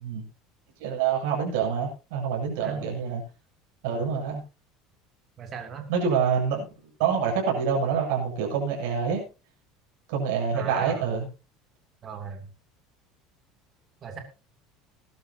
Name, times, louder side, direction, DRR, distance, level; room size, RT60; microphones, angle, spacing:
voice 1, 0.8-3.2 3.8-4.4 5.9-6.7 7.0-9.2 10.1-11.3, right 6 dB, 75° right, 0 dB, 7.7 m, -26 dB
voice 2, 5.4-5.9 10.5-11.1 12.0-12.5 14.0-14.2, right 6 dB, 25° right, 5 dB, 2.8 m, -38 dB
20.5 x 12.0 x 2.8 m, 0.30 s
cardioid pair, 160°, 0 cm